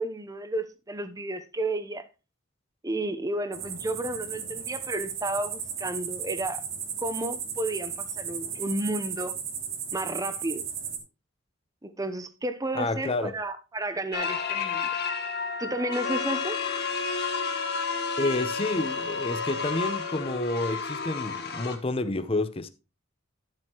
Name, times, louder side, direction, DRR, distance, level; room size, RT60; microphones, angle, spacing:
voice 1, 0.0-2.1 2.8-6.6 7.0-9.4 9.9-10.6 11.8-14.9 15.6-16.6, right 1 dB, 20° right, 0.8 m, -32 dB
sound 1, 3.5-11.0, right 7 dB, 80° right, 3.0 m, -35 dB
voice 2, 12.7-13.3 18.2-22.7, left 2 dB, 30° left, 0.8 m, -29 dB
sound 2, 14.1-21.8, left 5 dB, 55° left, 1.8 m, -32 dB
Wind instrument woodwind instrument, 16.0-20.5, left 5 dB, 75° left, 2.0 m, -35 dB
12.0 x 7.6 x 3.0 m
head